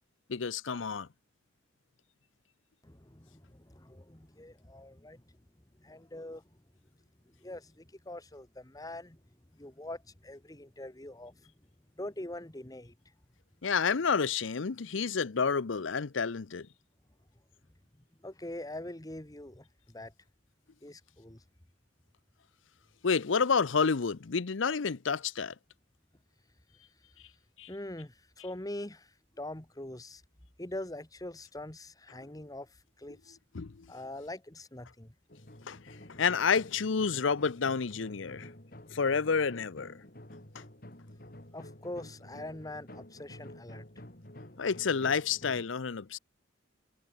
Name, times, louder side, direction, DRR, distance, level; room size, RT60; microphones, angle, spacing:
voice 1, 0.3-1.1 13.6-16.7 23.0-25.5 27.6-27.7 33.5-33.9 35.7-35.8 36.2-38.5 38.9-40.0 40.5-40.6 44.6-46.2, left 5 dB, 90° left, 0.7 m, -29 dB
voice 2, 2.8-5.2 5.8-6.4 7.4-9.2 9.5-11.5 12.0-12.9 18.2-20.1 20.8-21.4 27.7-30.2 30.6-33.4 33.9-35.1 41.5-43.8, left 1 dB, 20° left, 1.6 m, -43 dB
sound 1, 35.3-45.7, left 1 dB, 50° left, 3.7 m, -50 dB
head